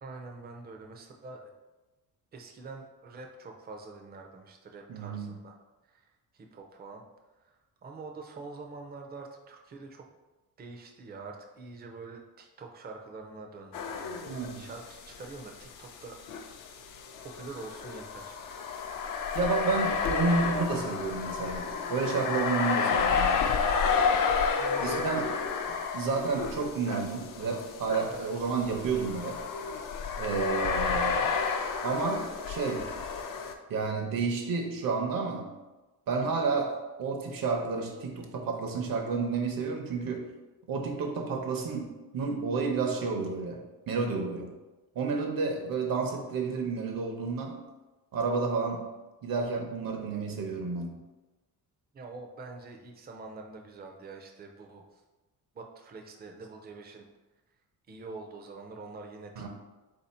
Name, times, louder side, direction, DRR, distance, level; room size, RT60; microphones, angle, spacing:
voice 1, 0.0-1.5 2.3-7.0 7.4-10.1 10.6-16.4 17.2-18.4 24.6-25.2 28.1-28.3 51.9-55.0 55.5-57.1 57.9-59.5, right 3 dB, 25° right, 3 dB, 0.5 m, -45 dB
voice 2, 4.9-5.3 14.2-14.6 19.3-23.5 24.8-25.3 25.9-29.4 30.2-31.3 31.8-32.9 33.7-35.5 36.1-40.3 40.7-44.5 44.9-47.6 48.1-48.8 49.2-51.0 59.4-59.5, right 4 dB, 65° right, 2 dB, 0.8 m, -31 dB
sound 1, 13.7-14.9 15.1-15.2 16.3-33.5, left 5 dB, 60° left, 0.5 m, -31 dB
4.0 x 2.8 x 4.2 m, 1.1 s
cardioid pair, 145°, 36 cm